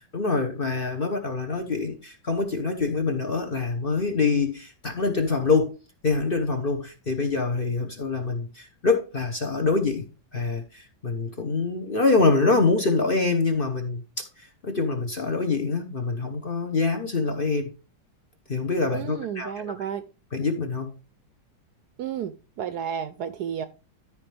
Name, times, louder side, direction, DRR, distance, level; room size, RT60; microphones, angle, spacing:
voice 1, 0.1-5.8 6.0-10.1 10.3-17.7 18.5-19.7 20.3-20.9, left 4 dB, 40° left, 4 dB, 0.9 m, -25 dB
voice 2, 18.9-20.0 22.0-23.7, right 8 dB, 70° right, 12 dB, 1.0 m, -32 dB
13.5 x 4.9 x 3.4 m, 0.32 s
omnidirectional pair, 2.1 m